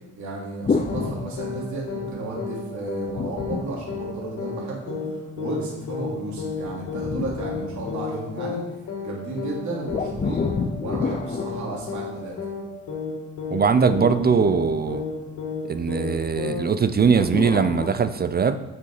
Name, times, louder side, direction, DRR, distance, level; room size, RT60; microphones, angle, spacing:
voice 1, 0.2-8.6 9.0-10.5 10.8-12.4, right 2 dB, 70° right, -4 dB, 3.0 m, -33 dB
sound 1, 0.6-2.1 3.1-4.7 6.4-8.4 9.9-12.5 13.5-15.4 17.0-17.9, left 4 dB, 25° left, 0.5 m, -31 dB
sound 2, 0.9-1.1 1.4-1.6 1.9-2.1 2.4-2.6 2.9-3.1 3.4-3.6 3.9-4.1 4.4-4.6 4.9-5.1 5.4-5.6 5.9-6.1 6.4-6.6 6.9-7.1 7.4-7.6 7.9-8.1 8.4-8.6 8.9-9.1 9.4-9.6 9.9-10.1 10.4-10.6 10.9-11.1 11.4-11.6 11.9-12.1 12.4-12.6 12.9-13.1 13.4-13.6 13.9-14.1 14.4-14.6 14.9-15.1 15.4-15.6 15.9-16.1 16.4-16.6, left 6 dB, 70° left, 2.4 m, -31 dB
voice 2, 13.5-15.0 15.6-18.6, right 6 dB, 30° right, 11 dB, 0.5 m, -21 dB
7.0 x 6.8 x 4.9 m, 1.2 s
cardioid pair, 90°, 30 cm